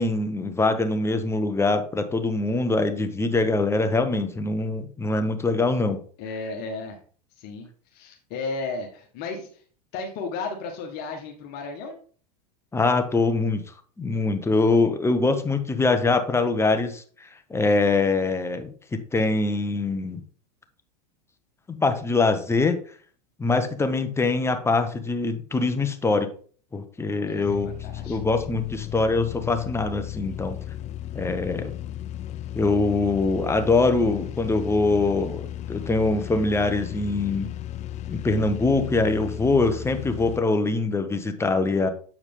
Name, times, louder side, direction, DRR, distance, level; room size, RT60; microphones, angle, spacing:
voice 1, 0.0-6.0 12.7-13.6 14.0-17.0 17.5-20.2 21.7-22.8 23.4-26.3 26.7-27.7 28.0-30.6 31.1-31.7 32.5-37.5 38.1-41.9, left 3 dB, 10° left, 7 dB, 1.1 m, -23 dB
voice 2, 6.2-7.0 7.4-9.6 9.9-12.0 27.3-28.2 31.6-31.7, left 3 dB, 50° left, 1 dB, 1.6 m, -34 dB
sound 1, 27.5-40.4, left 12 dB, 35° left, 0.5 m, -35 dB
8.1 x 4.8 x 3.7 m, 0.43 s
hypercardioid pair, 95°, 21 cm